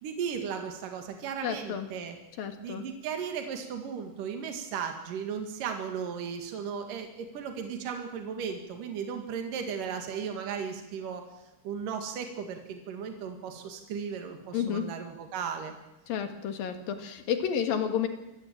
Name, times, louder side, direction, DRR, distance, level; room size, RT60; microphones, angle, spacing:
voice 1, 0.0-2.2 2.6-11.3 11.6-15.8, right 7 dB, 75° right, 5 dB, 3.5 m, -36 dB
voice 2, 1.4-1.9 2.4-2.9 14.5-14.9 16.1-18.1, left 8 dB, 85° left, 8 dB, 3.7 m, -31 dB
26.0 x 15.5 x 8.8 m, 0.98 s
omnidirectional pair, 4.0 m